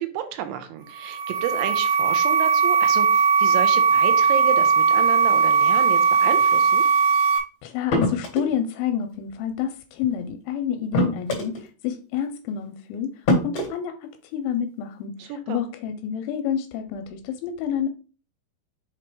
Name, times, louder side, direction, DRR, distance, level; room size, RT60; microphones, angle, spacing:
voice 1, 0.0-6.8 15.2-15.6, right 10 dB, 90° right, 8 dB, 3.0 m, -31 dB
sound 1, 0.9-7.4, right 5 dB, 75° right, 2.0 m, -19 dB
voice 2, 7.6-13.2 13.4-17.9, left 8 dB, 85° left, 7 dB, 3.0 m, -29 dB
sound 2, 7.9-8.5 10.0-10.1 10.9-11.6 12.6-12.7 13.3-13.7, left 1 dB, 45° left, 2.5 m, -23 dB
7.2 x 2.9 x 4.9 m, 0.36 s
omnidirectional pair, 5.4 m